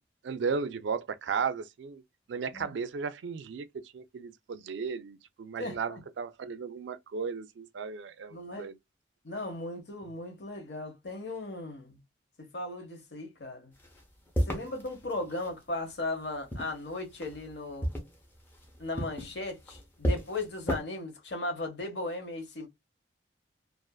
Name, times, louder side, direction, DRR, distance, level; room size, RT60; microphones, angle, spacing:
voice 1, 0.2-2.0 2.3-3.7 3.9-8.8, right 5 dB, 75° right, 0.4 m, -35 dB
voice 2, 5.6-6.0 8.3-8.7 9.2-12.0 12.5-13.7 14.5-17.9 18.8-22.7, left 2 dB, 65° left, 0.9 m, -37 dB
sound 1, 13.8-15.6 16.2-17.5 17.8-20.8, equal, 10° left, 0.7 m, -33 dB
2.5 x 2.4 x 2.3 m
head